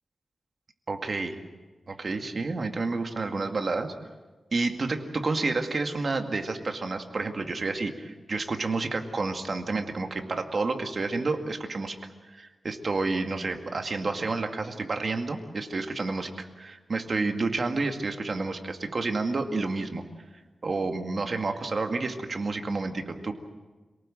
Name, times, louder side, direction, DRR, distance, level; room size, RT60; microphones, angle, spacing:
voice 1, 0.9-1.4 1.9-3.9 4.5-12.0 12.3-20.0 20.6-23.3, right 3 dB, 50° right, 5 dB, 2.1 m, -30 dB
27.5 x 18.5 x 7.7 m, 1.3 s
wide cardioid pair, 110°, 0 cm